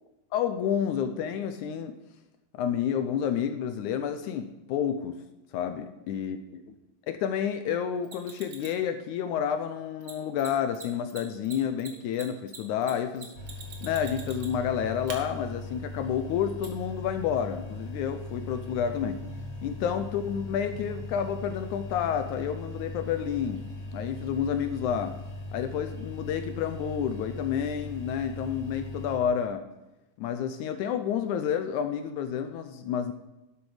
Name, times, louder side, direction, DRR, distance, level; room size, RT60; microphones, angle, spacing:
voice 1, 0.3-2.0 2.5-5.1 5.5-6.6 7.1-13.3 13.8-19.2 19.6-25.1 25.5-29.7 30.2-33.1, left 8 dB, 75° left, 9 dB, 1.8 m, -30 dB
Mechanisms, 8.0-8.8 10.0-10.1 10.4-10.5 10.7-10.8 11.1-14.7 15.1-15.2 16.6-16.7, right 5 dB, 55° right, 1.2 m, -43 dB
sound 1, 13.3-29.2, left 2 dB, 25° left, 2.3 m, -39 dB
11.5 x 8.1 x 5.0 m, 0.99 s
omnidirectional pair, 4.1 m